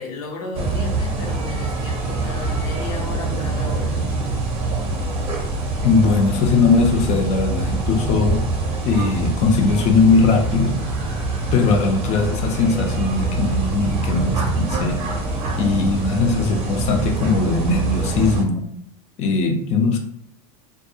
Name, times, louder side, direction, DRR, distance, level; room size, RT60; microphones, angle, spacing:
voice 1, 0.0-3.9, left 2 dB, 80° left, 1 dB, 0.8 m, -34 dB
sound 1, 0.5-18.4, right 3 dB, 30° right, 0.7 m, -25 dB
voice 2, 5.8-8.4 8.8-10.8 11.5-15.0 15.6-18.7 19.2-20.0, left 4 dB, 35° left, 4 dB, 0.4 m, -19 dB
2.3 x 2.2 x 2.7 m, 0.67 s
supercardioid pair, 135°, 18 cm